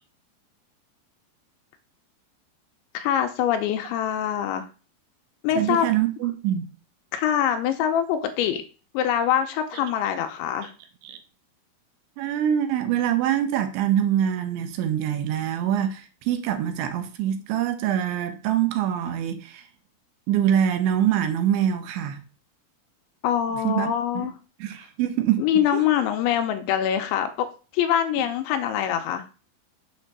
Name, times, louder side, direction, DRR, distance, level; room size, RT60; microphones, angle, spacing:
voice 1, 2.9-4.7 5.4-5.9 7.1-8.6 8.9-10.7 23.2-24.3 25.4-27.5 27.7-29.3, left 10 dB, 85° left, 3.0 m, -24 dB
voice 2, 5.5-6.7 11.0-11.2 12.2-19.7 20.3-22.2 23.6-24.3 24.6-25.4 25.7-25.8, right 10 dB, 80° right, 3.1 m, -24 dB
7.3 x 4.3 x 6.6 m
omnidirectional pair, 5.5 m